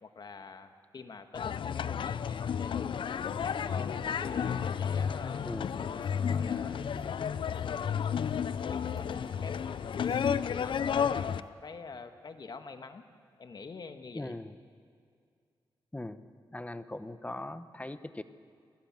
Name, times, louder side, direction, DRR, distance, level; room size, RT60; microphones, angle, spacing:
voice 1, 0.0-5.4 5.9-6.8 7.6-8.0 8.4-9.6 9.9-13.0 13.4-14.4, left 4 dB, 55° left, 7 dB, 1.5 m, -46 dB
sound 1, 1.3-11.4, left 7 dB, 70° left, 0.5 m, -32 dB
sound 2, 3.1-11.5, right 2 dB, 35° right, 2.6 m, -53 dB
voice 2, 14.1-14.5 15.9-16.2 16.5-18.2, left 1 dB, 15° left, 12 dB, 0.9 m, -40 dB
21.5 x 17.0 x 7.5 m, 2.2 s
cardioid pair, 70°, 9 cm